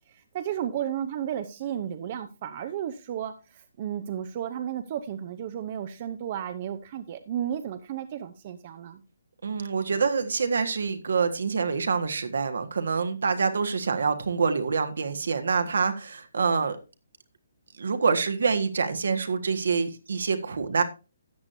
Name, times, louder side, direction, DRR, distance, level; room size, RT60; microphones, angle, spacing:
voice 1, 0.1-9.0, right 10 dB, 40° right, 9 dB, 0.8 m, -33 dB
voice 2, 9.4-16.8 17.8-20.8, right 5 dB, 70° right, 8 dB, 1.5 m, -26 dB
13.5 x 8.8 x 2.7 m, 0.31 s
figure-of-eight pair, 140°, 0 cm